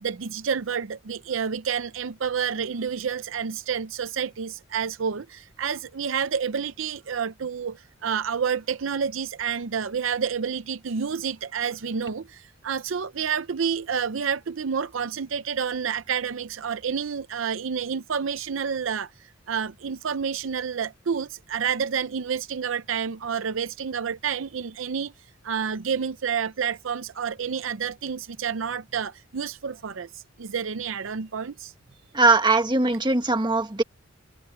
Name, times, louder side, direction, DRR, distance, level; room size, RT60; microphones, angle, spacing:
voice 1, 0.0-19.1 19.5-25.1 25.4-31.7, right 7 dB, 75° right, 0.6 m, -29 dB
voice 2, 32.1-33.8, right 3 dB, 25° right, 1.8 m, -20 dB
head